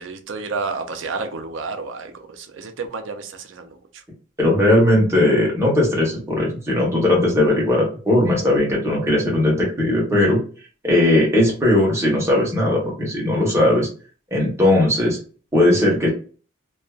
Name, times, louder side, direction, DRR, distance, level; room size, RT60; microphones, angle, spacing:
voice 1, 0.0-3.7, right 4 dB, 65° right, 0.4 m, -30 dB
voice 2, 4.4-10.4 10.8-13.9 14.3-15.2 15.5-16.1, left 1 dB, 15° right, 1.0 m, -18 dB
2.4 x 2.3 x 2.3 m
head